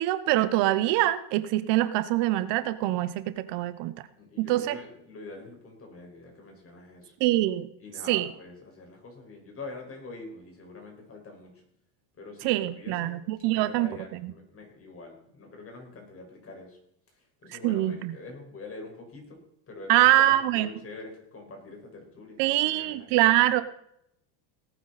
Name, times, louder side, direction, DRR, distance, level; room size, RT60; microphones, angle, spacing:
voice 1, 0.0-3.9 4.4-4.7 7.2-7.7 8.1-8.3 12.4-14.3 17.6-18.1 19.9-20.7 22.4-23.6, right 15 dB, 60° right, 13 dB, 1.1 m, -24 dB
voice 2, 4.2-7.1 7.8-11.6 12.2-13.2 13.5-16.8 17.1-19.4 19.7-23.6, left 3 dB, 30° left, 1 dB, 5.4 m, -45 dB
18.5 x 9.4 x 4.2 m, 0.74 s
supercardioid pair, 125°, 47 cm